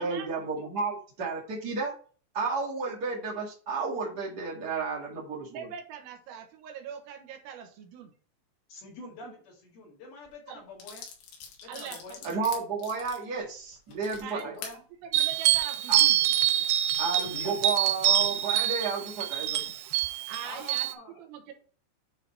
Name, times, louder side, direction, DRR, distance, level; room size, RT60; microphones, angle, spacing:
voice 1, 0.0-1.9 2.3-5.7 12.2-14.5 15.9-16.0 17.0-19.6, right 4 dB, 40° right, -4 dB, 1.5 m, -32 dB
voice 2, 5.5-8.1 9.2-9.3 10.5-10.6 11.7-12.3 14.2-14.6 15.1-16.2 20.3-20.9 21.2-21.5, right 8 dB, 75° right, 4 dB, 3.1 m, -42 dB
voice 3, 8.7-11.1 11.6-12.2 14.3-14.8 17.3-17.5 20.4-21.3, left 2 dB, 60° left, -2 dB, 3.8 m, -46 dB
sound 1, 10.3-10.4 10.8-14.8 15.3-15.6, left 6 dB, 80° left, 3.9 m, -45 dB
sound 2, 15.1-20.9, right 12 dB, 90° right, 2.3 m, -25 dB
9.8 x 3.8 x 4.3 m, 0.41 s
omnidirectional pair, 5.2 m